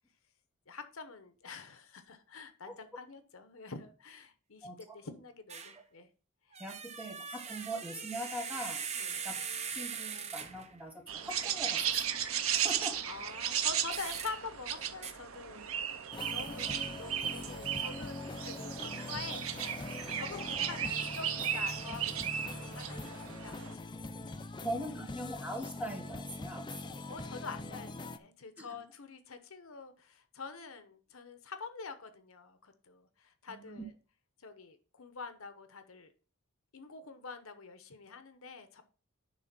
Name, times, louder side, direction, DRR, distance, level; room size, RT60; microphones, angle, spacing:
voice 1, 0.7-6.1 6.5-6.6 9.0-9.2 13.1-18.2 18.4-19.7 20.1-24.7 27.1-33.9 34.4-36.1 36.7-38.8, left 4 dB, 70° left, 9 dB, 1.0 m, -46 dB
sound 1, 5.5-5.8 6.5-10.8 13.9-14.3 15.0-15.1, right 6 dB, 30° right, 0.7 m, -40 dB
voice 2, 6.6-8.8 9.2-9.3 9.7-11.8 12.5-13.0 24.6-27.0 28.6-28.7 33.5-33.8, equal, 5° right, 2 dB, 1.7 m, -41 dB
sound 2, 11.1-23.7, right 9 dB, 65° right, 0.7 m, -35 dB
sound 3, 16.1-28.2, left 2 dB, 20° left, 0.5 m, -43 dB
10.5 x 3.6 x 6.0 m, 0.37 s
head